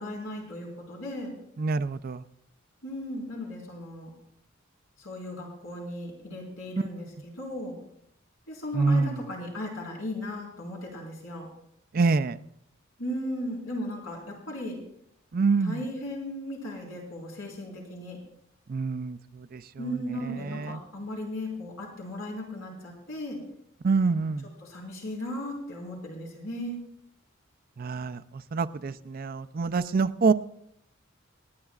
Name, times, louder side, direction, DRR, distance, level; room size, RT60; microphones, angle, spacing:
voice 1, 0.0-1.3 2.8-4.1 5.0-7.8 8.5-11.5 13.0-14.8 15.6-18.2 19.8-23.4 24.6-26.8, left 1 dB, 85° left, -3 dB, 4.5 m, -36 dB
voice 2, 1.6-2.2 8.7-9.2 11.9-12.4 15.3-15.8 18.7-19.2 19.5-19.6 20.4-20.8 23.8-24.5 27.8-28.2 28.5-30.3, right 4 dB, 45° right, 11 dB, 0.4 m, -25 dB
28.0 x 9.6 x 2.4 m, 0.73 s
head